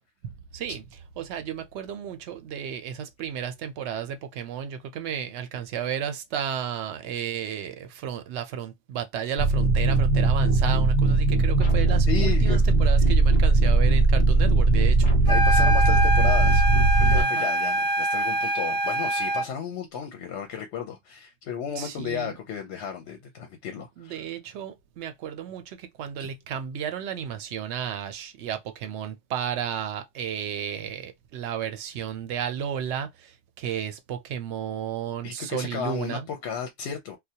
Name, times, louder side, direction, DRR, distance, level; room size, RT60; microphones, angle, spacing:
voice 1, 0.2-0.8 1.2-15.0 17.2-17.5 21.8-22.3 24.0-33.1 33.6-36.3, right 8 dB, 85° right, 0.9 m, -33 dB
sound 1, 9.4-17.2, right 3 dB, 50° left, 1.0 m, -19 dB
voice 2, 12.1-12.7 13.0-13.1 15.3-16.6 17.0-24.2 26.2-26.3 35.2-37.2, left 8 dB, 80° left, 0.9 m, -34 dB
sound 2, 15.3-19.5, right 1 dB, 20° left, 0.9 m, -25 dB
2.2 x 2.2 x 2.7 m
omnidirectional pair, 1.1 m